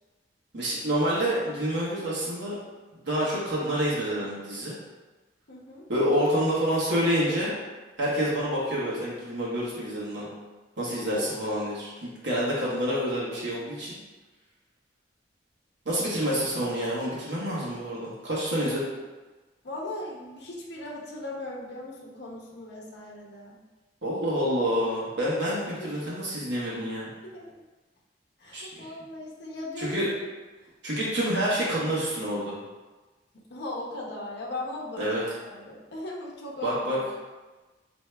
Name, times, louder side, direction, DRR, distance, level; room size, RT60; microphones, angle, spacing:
voice 1, 0.5-2.6 3.0-4.7 5.9-7.5 8.0-10.3 10.8-14.0 15.8-18.9 24.0-27.1 28.5-28.9 29.8-30.1 30.8-32.6 35.0-35.2 36.6-37.0, equal, 75° right, -7 dB, 1.1 m, -28 dB
voice 2, 5.5-5.8 11.0-11.3 19.6-23.6 25.9-26.0 27.2-27.6 28.4-30.0 30.6-30.7 33.5-35.0 35.4-37.0, left 2 dB, 65° left, -4 dB, 0.6 m, -38 dB
4.4 x 2.7 x 2.2 m, 1.2 s
head